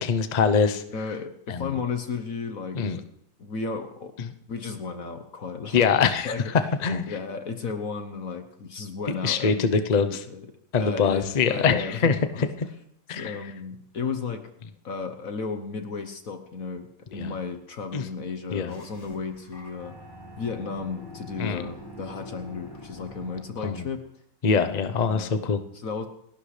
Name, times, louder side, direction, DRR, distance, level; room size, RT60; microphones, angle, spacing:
voice 1, 0.0-0.8 1.5-1.8 2.7-3.0 5.7-6.3 6.8-7.1 9.2-10.2 10.7-12.5 13.1-13.4 17.2-17.3 17.9-18.0 18.5-18.7 21.4-21.7 23.6-23.9 24.4-25.6, left 5 dB, 75° left, 10 dB, 0.3 m, -23 dB
voice 2, 0.9-3.0 3.4-4.1 4.5-5.8 6.2-6.6 7.1-10.5 10.8-12.5 13.1-14.5 14.8-19.9 20.4-24.0 25.1-26.1, left 5 dB, 50° left, 7 dB, 1.3 m, -34 dB
sound 1, 18.7-23.6, equal, 10° left, 2.6 m, -44 dB
29.0 x 12.0 x 3.3 m, 0.76 s
omnidirectional pair, 2.0 m